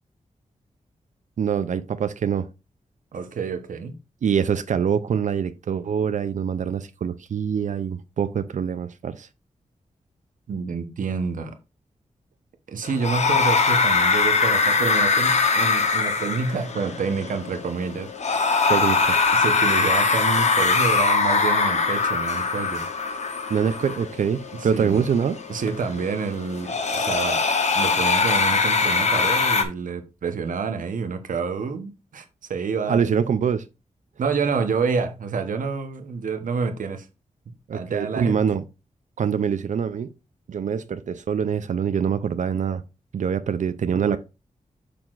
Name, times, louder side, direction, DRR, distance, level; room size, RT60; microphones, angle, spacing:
voice 1, 1.4-2.5 4.2-9.3 18.7-19.2 23.5-25.4 32.9-33.6 37.7-38.6 39.2-40.1 40.5-42.8 43.1-44.2, right 7 dB, 70° right, 0.5 m, -24 dB
voice 2, 3.1-4.0 10.5-11.5 12.7-18.5 18.8-18.9 19.3-22.9 24.5-25.0 25.5-27.5 27.7-32.2 32.5-33.2 34.2-37.1 37.7-38.4 43.9-44.2, right 5 dB, 90° right, 0.9 m, -28 dB
sound 1, 12.8-29.6, left 4 dB, 60° left, 0.9 m, -22 dB
6.7 x 5.8 x 2.5 m
wide cardioid pair, 100°, 13 cm